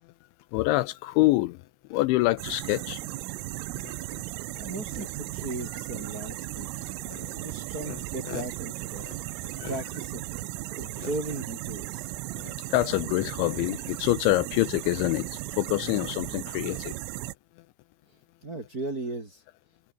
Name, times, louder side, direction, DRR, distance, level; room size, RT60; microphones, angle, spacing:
voice 1, 0.5-1.6 1.9-3.0 3.8-4.2 7.1-7.3 7.9-8.0 8.3-8.4 9.0-9.2 9.4-9.7 11.0-11.1 12.4-17.0, left 19 dB, 80° left, 2.9 m, -26 dB
sound 1, 2.4-17.4, right 17 dB, 90° right, 3.7 m, -36 dB
voice 2, 4.6-9.0 9.3-12.1 18.4-19.4, right 2 dB, 25° right, 2.4 m, -37 dB
omnidirectional pair, 5.7 m